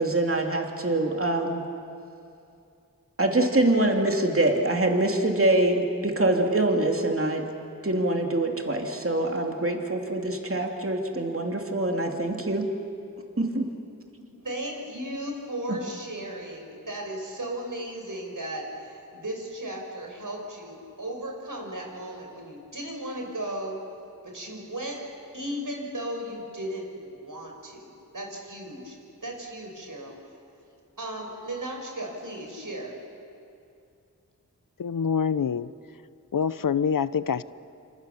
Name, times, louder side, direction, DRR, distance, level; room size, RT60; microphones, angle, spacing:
voice 1, 0.0-1.6 3.2-7.5 7.8-12.7 13.4-13.7 15.7-15.8, right 2 dB, 40° right, 2 dB, 2.8 m, -24 dB
voice 2, 14.4-23.8 24.2-25.0 25.3-29.0 29.2-30.2 31.0-32.9, right 1 dB, 70° right, 1 dB, 5.6 m, -36 dB
voice 3, 34.8-35.7 36.3-37.4, left 7 dB, 75° left, 16 dB, 0.7 m, -25 dB
28.0 x 26.0 x 7.0 m, 2.5 s
wide cardioid pair, 45°, 34 cm